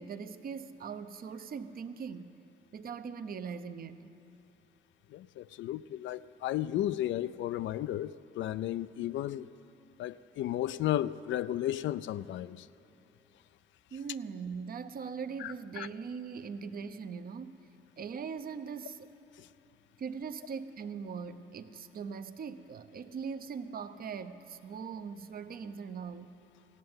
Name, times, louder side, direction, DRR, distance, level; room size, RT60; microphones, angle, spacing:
voice 1, 0.0-2.3 2.7-4.1 13.9-17.6 18.0-19.1 20.0-26.3, right 6 dB, 50° right, 0.7 m, -41 dB
voice 2, 5.1-9.5 10.0-12.7 15.4-15.9 19.4-19.5, left 13 dB, 70° left, 0.4 m, -34 dB
15.0 x 7.7 x 9.5 m
cardioid pair, 90°, 20 cm